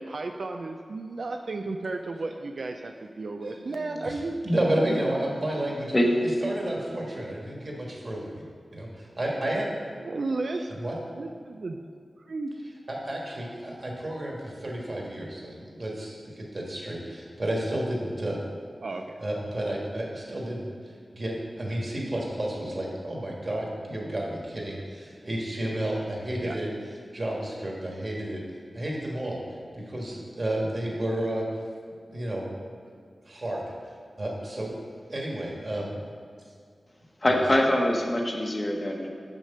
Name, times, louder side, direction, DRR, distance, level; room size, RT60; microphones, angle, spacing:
voice 1, 0.0-4.7 10.0-10.7 11.1-11.8 12.2-12.5 18.8-19.2 26.4-26.6, right 3 dB, 70° right, 4 dB, 0.4 m, -33 dB
voice 2, 3.4-4.1 4.4-5.9 6.2-8.4 8.7-9.7 10.7-11.0 12.9-18.4 19.2-20.7 21.1-26.7 27.1-28.4 28.7-29.4 29.9-31.5 32.1-32.5 33.3-33.7 34.2-34.8 35.1-36.0 37.3-37.4, right 1 dB, 45° right, -2 dB, 1.9 m, -31 dB
voice 3, 37.2-39.1, left 1 dB, 30° left, 1 dB, 1.0 m, -23 dB
6.6 x 6.1 x 5.5 m, 2.2 s
wide cardioid pair, 70°, 0 cm